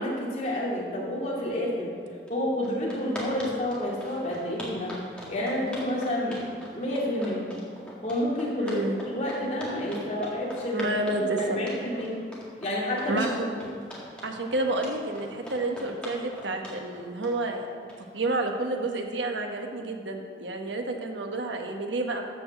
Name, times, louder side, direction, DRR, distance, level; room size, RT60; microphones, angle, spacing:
voice 1, 0.0-1.9 2.3-5.0 5.3-6.3 6.7-7.5 8.0-8.8 9.1-12.1 12.6-13.3, left 1 dB, 40° left, -5 dB, 2.7 m, -29 dB
sound 1, 2.3-2.4 2.6-18.2, equal, 5° left, 2.0 m, -42 dB
voice 2, 8.6-9.0 10.7-11.7 13.1-13.5 14.2-17.7 18.1-22.2, right 2 dB, 90° right, 3 dB, 1.2 m, -30 dB
13.0 x 5.0 x 7.5 m, 2.2 s
head